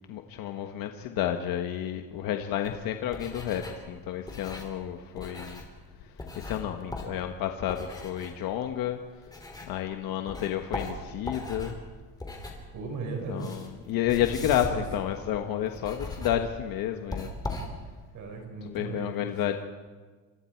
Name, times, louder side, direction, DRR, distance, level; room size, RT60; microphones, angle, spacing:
voice 1, 0.1-5.6 6.4-9.0 9.6-11.8 13.3-17.3 18.7-19.6, left 11 dB, 70° left, 5 dB, 1.4 m, -31 dB
sound 1, 2.6-9.9 10.3-18.1, left 2 dB, 10° left, 3.3 m, -40 dB
voice 2, 12.7-13.7 14.4-14.8 18.1-19.2, right 4 dB, 55° right, 3 dB, 4.9 m, -36 dB
29.5 x 25.5 x 4.6 m, 1.4 s
cardioid pair, 160°, 36 cm